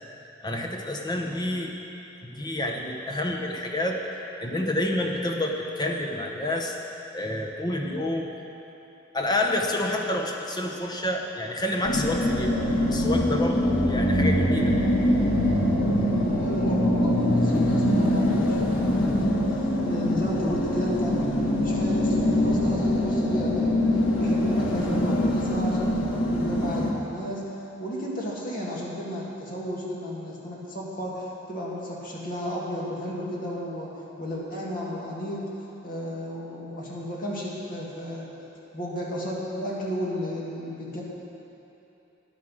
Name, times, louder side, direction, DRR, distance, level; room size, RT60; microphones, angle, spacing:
voice 1, 0.4-1.7 2.3-4.0 4.4-6.7 7.1-8.3 9.1-12.6 12.9-14.7, left 1 dB, 20° left, 1 dB, 0.9 m, -28 dB
sound 1, 11.8-26.9, left 1 dB, 90° left, 1.4 m, -23 dB
voice 2, 16.4-27.4 27.8-33.9 34.2-35.4 35.8-38.3 38.7-41.0, equal, 45° left, -5 dB, 2.1 m, -33 dB
10.5 x 9.5 x 6.3 m, 3.0 s
head